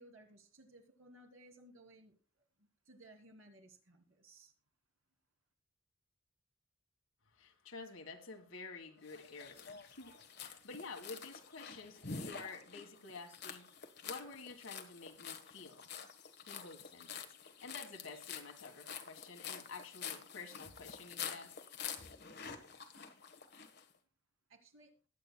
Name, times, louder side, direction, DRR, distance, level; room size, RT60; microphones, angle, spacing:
voice 1, 0.0-2.2 2.6-4.5 24.5-24.9, right 1 dB, 85° right, 3.0 m, -60 dB
voice 2, 7.4-13.7 14.0-15.9 16.4-21.5, left 4 dB, 75° left, 1.8 m, -50 dB
sound 1, 9.1-23.8, left 6 dB, 50° left, 1.3 m, -48 dB
20.5 x 8.4 x 2.3 m
head